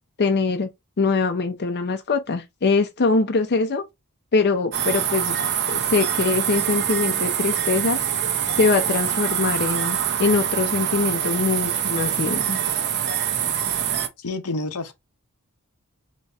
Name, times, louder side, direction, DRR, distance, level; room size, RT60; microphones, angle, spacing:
voice 1, 0.2-0.7 1.0-3.8 4.3-5.4 5.7-8.0 8.6-12.6, left 4 dB, 50° left, 0.6 m, -22 dB
sound 1, 4.7-14.1, right 9 dB, 50° right, 0.6 m, -24 dB
voice 2, 14.2-14.9, left 2 dB, 85° left, 0.8 m, -29 dB
4.1 x 3.0 x 3.4 m
head